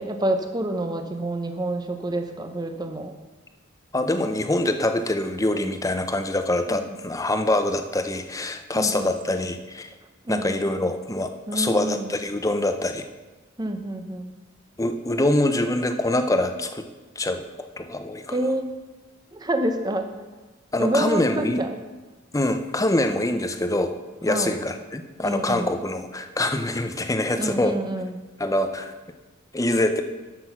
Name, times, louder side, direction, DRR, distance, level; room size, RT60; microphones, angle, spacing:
voice 1, 0.0-3.1 5.5-5.6 6.7-7.0 8.7-9.1 10.2-10.7 11.5-12.1 13.6-14.3 18.3-18.7 19.3-20.1 20.8-21.8 24.3-24.6 25.2-25.7 27.4-28.2, right 1 dB, 20° right, 5 dB, 0.9 m, -28 dB
voice 2, 3.9-9.9 10.3-13.1 14.8-16.8 17.2-17.4 17.8-18.4 20.7-21.6 22.3-27.8 28.4-28.9 29.5-30.0, left 1 dB, 15° left, 8 dB, 0.6 m, -24 dB
12.0 x 6.1 x 5.9 m, 1.2 s
head